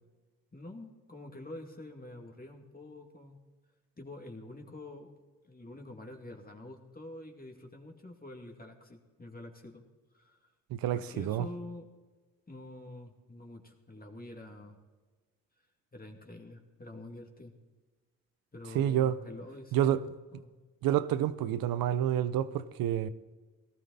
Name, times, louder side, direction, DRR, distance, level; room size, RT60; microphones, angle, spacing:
voice 1, 0.5-3.4 4.0-5.1 5.4-9.8 10.1-10.4 10.9-11.9 12.5-14.8 15.9-17.5 18.5-20.5, left 2 dB, 25° left, 2.5 m, -47 dB
voice 2, 10.7-11.5 18.7-19.2 19.7-20.0 20.8-23.1, right 11 dB, 80° right, 0.7 m, -28 dB
18.0 x 13.0 x 4.1 m
supercardioid pair, 55°, 34 cm